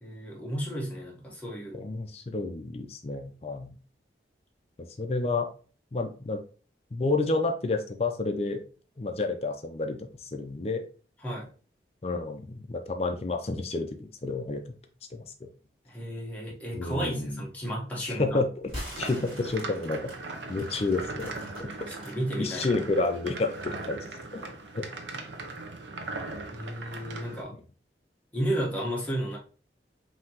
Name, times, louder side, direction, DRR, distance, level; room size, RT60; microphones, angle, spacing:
voice 1, 0.0-1.9 11.2-11.5 15.9-18.4 21.9-22.7 26.5-27.5 28.3-29.4, equal, 10° left, -4 dB, 1.2 m, -33 dB
voice 2, 1.7-3.7 5.0-5.5 5.9-6.4 6.9-8.6 9.0-10.8 12.0-14.7 15.1-15.5 16.7-17.4 18.1-18.5 19.0-20.1 20.5-21.3 21.6-21.7 22.4-24.0 24.3-24.8, left 3 dB, 35° left, 6 dB, 0.4 m, -30 dB
sound 1, 18.6-22.6 23.0-24.3, equal, 30° right, 1.7 m, -43 dB
sound 2, 18.9-27.4, right 3 dB, 85° right, 0.7 m, -39 dB
5.5 x 2.8 x 2.9 m, 0.38 s
head